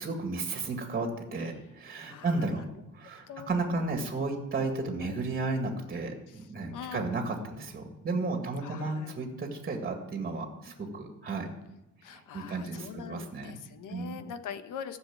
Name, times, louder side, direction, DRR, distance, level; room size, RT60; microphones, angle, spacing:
voice 1, 0.0-2.6 2.9-11.5 12.1-13.5 13.9-14.2, right 3 dB, 30° right, 3 dB, 2.0 m, -33 dB
voice 2, 2.1-2.6 3.3-3.8 5.0-5.2 6.3-7.7 8.6-9.2 12.0-15.0, left 8 dB, 80° left, 10 dB, 1.3 m, -43 dB
15.0 x 6.9 x 8.8 m, 0.92 s
cardioid pair, 175°, 31 cm